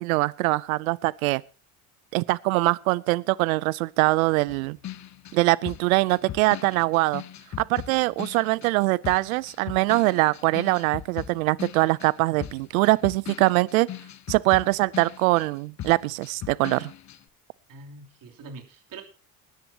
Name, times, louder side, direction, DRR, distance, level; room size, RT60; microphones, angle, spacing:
voice 1, 0.0-1.4 2.1-4.8 5.3-7.2 7.7-13.9 14.3-16.9, right 21 dB, 90° right, 0.5 m, -23 dB
sound 1, 4.5-8.8 9.0-15.5 15.8-17.2, left 11 dB, 45° left, 0.9 m, -39 dB
voice 2, 17.7-19.0, right 3 dB, 55° right, 3.2 m, -43 dB
20.5 x 10.5 x 2.8 m
hypercardioid pair, 70°, 40 cm